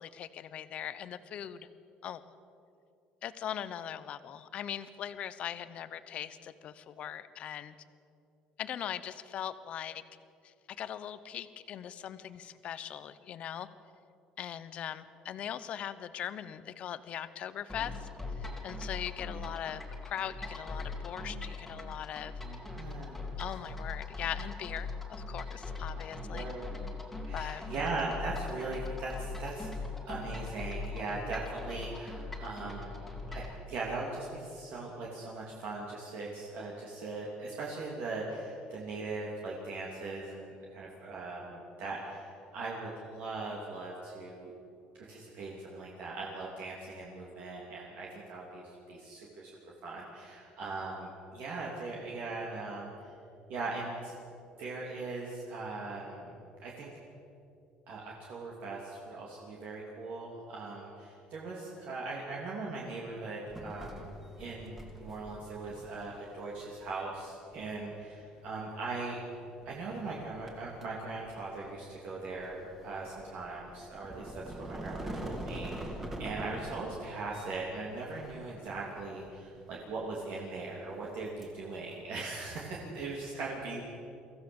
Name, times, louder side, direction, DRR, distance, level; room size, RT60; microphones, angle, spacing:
voice 1, 0.0-1.7 2.0-2.2 3.2-7.7 8.6-10.0 10.4-13.7 14.4-22.3 23.4-26.5 27.3-27.7, left 10 dB, 45° left, 14 dB, 0.8 m, -40 dB
sound 1, 17.7-33.6, left 3 dB, 5° left, 2.3 m, -40 dB
voice 2, 22.4-23.3 25.9-26.0 26.3-26.7 27.2-29.7 30.1-33.0 33.3-44.5 45.1-49.5 49.8-53.1 53.5-54.1 54.6-56.4 56.6-56.9 57.9-69.2 69.6-83.8, right 3 dB, 55° right, -3 dB, 2.9 m, -40 dB
sound 2, 63.5-82.9, right 1 dB, 10° right, 2.5 m, -46 dB
23.5 x 15.5 x 7.2 m, 2.7 s
cardioid pair, 160°, 3 cm